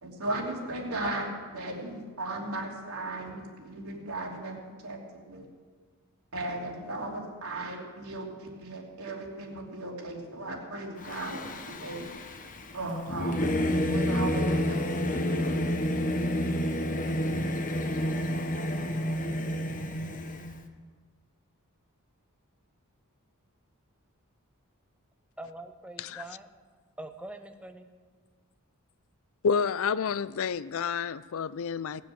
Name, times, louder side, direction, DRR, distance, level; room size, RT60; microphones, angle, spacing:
voice 1, 0.0-5.5 6.3-12.1 12.7-15.3 15.8-16.0, right 2 dB, 90° right, -1 dB, 3.0 m, -37 dB
Singing / Musical instrument, 11.0-20.6, equal, 40° left, 1.0 m, -29 dB
voice 2, 25.4-26.5 27.0-27.9, right 2 dB, 5° right, 7 dB, 0.8 m, -43 dB
voice 3, 29.4-32.0, left 6 dB, 65° left, 17 dB, 0.4 m, -29 dB
18.5 x 7.5 x 7.5 m, 1.5 s
head